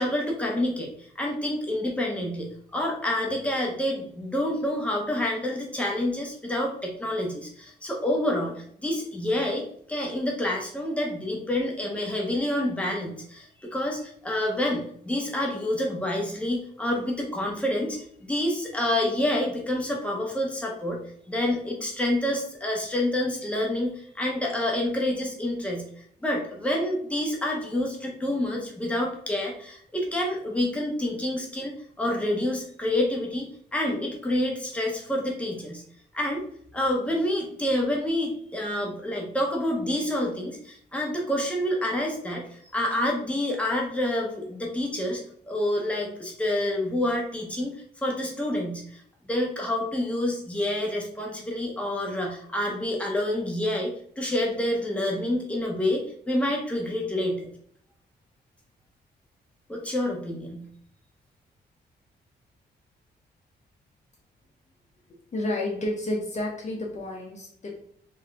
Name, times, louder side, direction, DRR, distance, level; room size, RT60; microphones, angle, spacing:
voice 1, 0.0-21.0 21.3-25.8 26.2-35.8 36.1-36.4 36.7-47.7 48.0-49.0 49.3-57.5 59.7-60.7, left 1 dB, 5° left, -1 dB, 1.2 m, -28 dB
voice 2, 65.3-67.8, left 1 dB, 40° left, 0 dB, 0.9 m, -30 dB
4.5 x 2.8 x 3.6 m, 0.64 s
cardioid pair, 95°, 17 cm